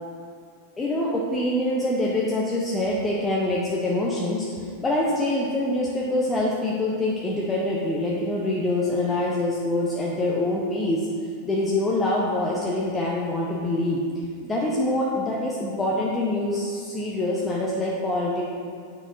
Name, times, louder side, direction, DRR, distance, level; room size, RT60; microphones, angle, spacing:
voice 1, 0.8-11.1 11.4-14.0 14.4-18.4, left 1 dB, 15° left, -4 dB, 0.8 m, -25 dB
9.1 x 5.9 x 2.6 m, 2.3 s
figure-of-eight pair, 90°, 0 cm